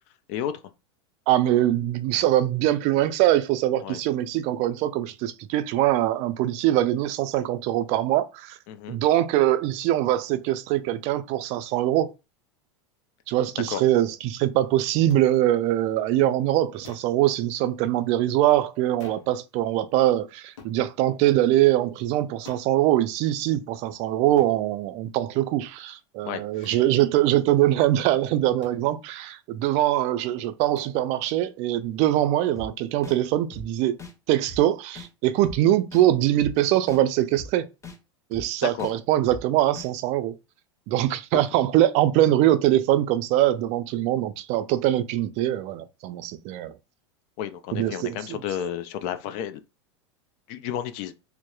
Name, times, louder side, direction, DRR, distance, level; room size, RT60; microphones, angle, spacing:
voice 1, 1.3-8.6 8.9-12.1 13.3-34.0 34.3-37.7 38.3-40.4 40.9-46.7 47.7-48.4, right 13 dB, 50° right, 0.4 m, -23 dB
voice 2, 8.7-9.0 13.7-13.8 26.2-26.8 38.6-38.9 47.4-49.6 50.5-51.1, left 10 dB, 50° left, 0.4 m, -32 dB
sound 1, 15.1-15.3 16.8-17.2 19.0-19.3 20.6-20.8 22.4-22.7 24.4-24.6 26.6-26.9 28.6-28.9 30.7-31.0, left 5 dB, 85° left, 0.8 m, -47 dB
sound 2, 32.6-32.7 33.0-33.2 33.5-33.6 34.0-34.1 34.5-34.6 35.0-35.1 35.4-35.6 35.9-36.0 36.4-36.5 36.9-37.0 37.4-37.5 37.8-38.0 38.3-38.4 38.8-38.9 39.3-39.4 39.8-39.9, left 2 dB, 20° left, 0.7 m, -39 dB
2.7 x 2.0 x 2.3 m
hypercardioid pair, 100°, 15 cm